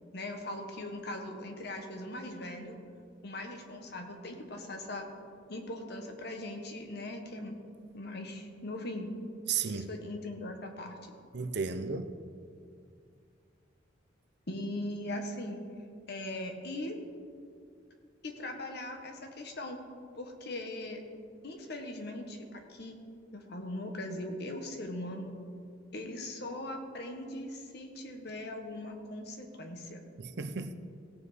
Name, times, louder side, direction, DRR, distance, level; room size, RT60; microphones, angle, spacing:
voice 1, 0.1-2.8 3.2-5.1 5.5-7.6 7.9-9.2 9.7-11.1 14.5-15.6 16.1-17.0 18.2-19.8 20.2-21.0 21.4-23.0 23.3-25.4 25.9-30.0, left 1 dB, 60° left, 4 dB, 1.3 m, -40 dB
voice 2, 9.5-9.9 11.3-12.1 30.2-30.8, right 6 dB, 60° right, 10 dB, 0.6 m, -34 dB
17.0 x 7.1 x 4.2 m, 2.3 s
head